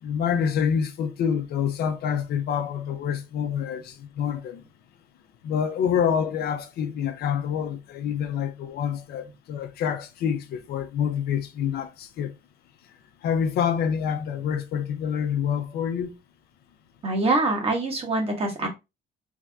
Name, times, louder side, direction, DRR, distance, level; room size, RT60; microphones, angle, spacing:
voice 1, 0.0-4.6 5.4-12.3 13.2-16.2, left 8 dB, 70° left, 0.7 m, -27 dB
voice 2, 17.0-18.7, right 2 dB, 35° right, 1.4 m, -24 dB
3.4 x 2.5 x 3.5 m
cardioid pair, 110°, 17 cm